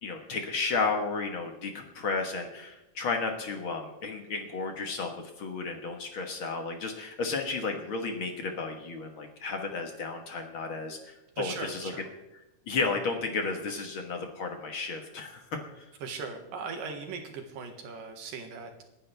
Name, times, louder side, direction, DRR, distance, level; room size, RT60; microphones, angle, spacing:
voice 1, 0.0-11.9 12.7-15.9, left 4 dB, 50° left, 4 dB, 1.7 m, -33 dB
voice 2, 11.4-12.1 16.0-18.8, right 5 dB, 90° right, 4 dB, 3.3 m, -39 dB
28.0 x 10.0 x 3.4 m, 0.96 s
omnidirectional pair, 3.8 m